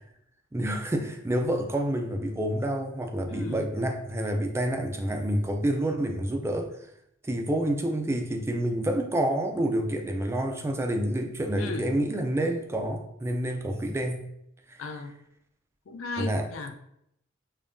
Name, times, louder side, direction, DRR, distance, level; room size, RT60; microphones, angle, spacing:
voice 1, 0.5-6.7 7.2-14.3 14.7-14.8 16.2-16.5, right 1 dB, 15° right, 4 dB, 0.3 m, -28 dB
voice 2, 3.3-3.7 11.6-11.9 14.8-15.1 15.9-16.8, left 3 dB, 70° left, 7 dB, 0.4 m, -36 dB
5.1 x 2.2 x 2.5 m, 0.76 s
head